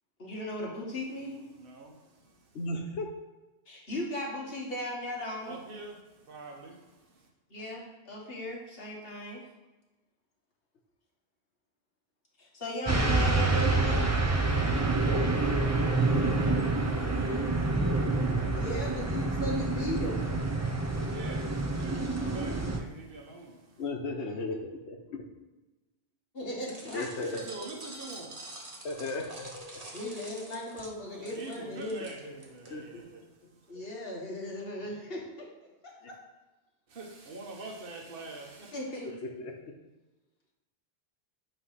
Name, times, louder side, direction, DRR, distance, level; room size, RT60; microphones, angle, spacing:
voice 1, 0.2-1.4 3.7-5.6 7.5-9.4 12.4-14.1 18.5-20.2 26.3-27.1 29.9-32.0 33.7-35.5 36.1-36.2 38.7-39.2, left 1 dB, 60° left, -2 dB, 1.8 m, -37 dB
voice 2, 1.2-2.6 5.4-7.3 14.4-17.7 20.8-23.8 27.2-28.9 31.1-33.7 36.9-38.7, right 2 dB, 55° right, 0 dB, 1.3 m, -46 dB
voice 3, 2.5-3.1 20.3-20.8 23.8-25.2 26.9-27.7 28.8-29.8 32.0-32.1 32.7-33.0 39.2-39.5, left 2 dB, 85° left, 3 dB, 1.2 m, -36 dB
sound 1, 12.8-22.8, right 2 dB, 15° right, 0.6 m, -27 dB
sound 2, 26.7-32.7, right 1 dB, 35° right, 1.3 m, -46 dB
9.1 x 3.1 x 5.7 m, 1.1 s
omnidirectional pair, 1.1 m